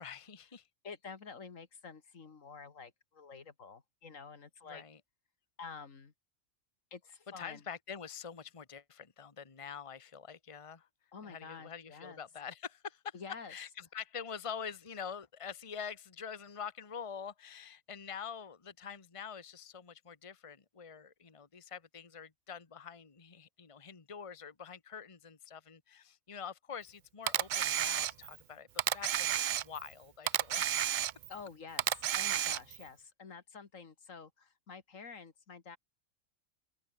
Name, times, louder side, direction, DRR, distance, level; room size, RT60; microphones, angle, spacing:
voice 1, 0.0-0.7 4.7-5.0 7.4-10.9 11.2-13.1 13.5-30.9, left 7 dB, 25° left, 1.2 m, -46 dB
voice 2, 0.8-4.8 5.6-6.1 6.9-7.6 11.1-12.2 13.1-13.5 31.3-35.8, left 5 dB, 75° left, 2.2 m, -49 dB
Camera, 27.3-28.4 28.8-29.9 30.3-31.4 31.8-32.8, right 11 dB, 75° right, 0.4 m, -32 dB
omnidirectional pair, 1.4 m